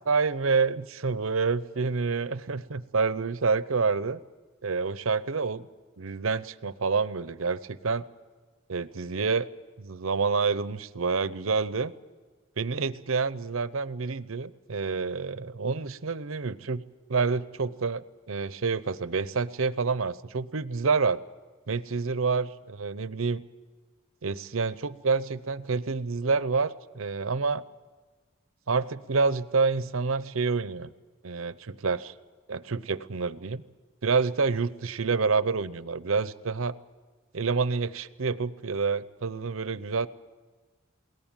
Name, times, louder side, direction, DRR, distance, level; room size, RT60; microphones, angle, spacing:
voice 1, 0.1-4.2 4.6-5.7 6.0-8.0 8.7-9.5 9.8-11.9 12.6-16.8 17.1-21.2 21.7-23.4 24.2-27.6 28.7-30.9 31.2-32.1 32.5-33.6 34.0-36.7 37.3-40.1, right 4 dB, 75° right, 16 dB, 0.7 m, -28 dB
21.5 x 18.0 x 9.0 m, 1.4 s
head